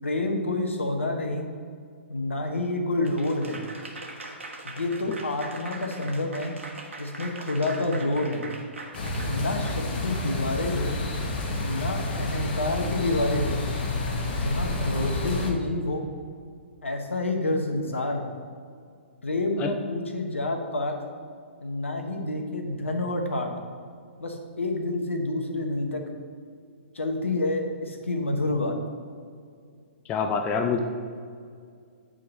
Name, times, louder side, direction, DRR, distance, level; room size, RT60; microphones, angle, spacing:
voice 1, 0.0-1.5 2.1-3.6 4.6-6.5 7.0-8.4 9.3-11.0 11.6-13.6 14.3-16.1 16.8-18.3 19.2-21.0 21.6-23.5 24.2-26.0 26.9-28.7, left 2 dB, 80° left, 3 dB, 1.0 m, -28 dB
Applause / Crowd, 3.0-10.3, right 2 dB, 80° right, 1.0 m, -41 dB
sound 1, 8.9-15.5, left 2 dB, 50° left, 1.0 m, -29 dB
voice 2, 30.1-30.8, left 6 dB, 20° left, 5 dB, 0.4 m, -25 dB
8.5 x 3.7 x 4.1 m, 2.2 s
figure-of-eight pair, 125°, 7 cm